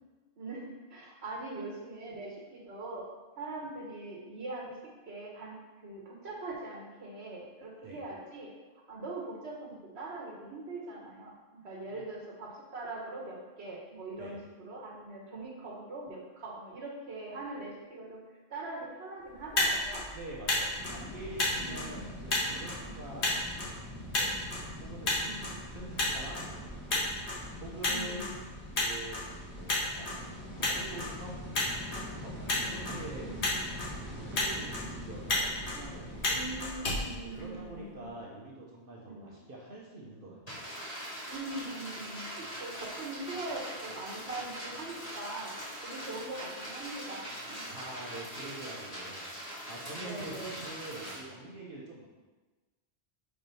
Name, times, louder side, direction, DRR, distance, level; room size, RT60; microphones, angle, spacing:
voice 1, 0.4-3.0 3.4-4.8 5.0-5.6 5.8-8.5 8.9-18.2 18.5-20.0 21.5-22.0 22.8-23.1 25.2-25.5 27.8-28.4 33.2-33.7 36.3-38.1 39.0-39.4 41.3-45.5 45.8-47.7 49.9-50.6, right 2 dB, 75° right, -2 dB, 1.5 m, -42 dB
Motor vehicle (road), 19.3-37.9, left 2 dB, 85° left, 1.7 m, -34 dB
voice 2, 20.1-23.4 24.2-24.4 24.8-27.1 27.6-28.2 28.7-30.2 30.6-31.4 31.9-33.3 34.0-36.8 37.3-40.7 47.7-52.0, right 1 dB, 55° right, -4 dB, 1.2 m, -45 dB
sound 1, 20.8-36.6, equal, 10° right, 1.2 m, -44 dB
sound 2, 40.5-51.2, equal, 35° left, 2.3 m, -42 dB
4.9 x 4.4 x 5.3 m, 1.3 s
omnidirectional pair, 1.1 m